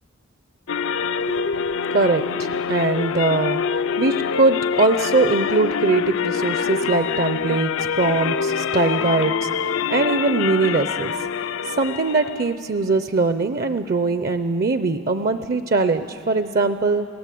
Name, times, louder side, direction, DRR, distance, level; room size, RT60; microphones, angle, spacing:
sound 1, 0.7-12.5, left 6 dB, 70° left, 0.5 m, -25 dB
voice 1, 1.3-1.6 1.9-3.6 4.0-11.1 11.6-17.1, right 3 dB, 45° right, 10 dB, 0.5 m, -21 dB
28.5 x 18.0 x 8.4 m, 2.8 s
head